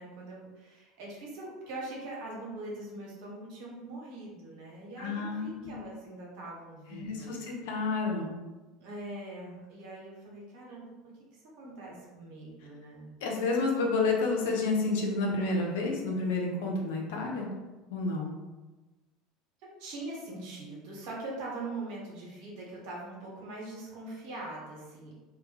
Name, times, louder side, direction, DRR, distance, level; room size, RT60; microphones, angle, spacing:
voice 1, 0.0-7.3 8.8-10.9 11.3-13.1 19.6-25.1, right 2 dB, 65° right, -3 dB, 0.9 m, -42 dB
voice 2, 5.0-5.8 6.9-8.4 13.2-17.5 17.9-18.4, left 3 dB, 75° left, 0 dB, 0.5 m, -30 dB
2.1 x 2.1 x 3.2 m, 1.2 s
hypercardioid pair, 80°, 0 cm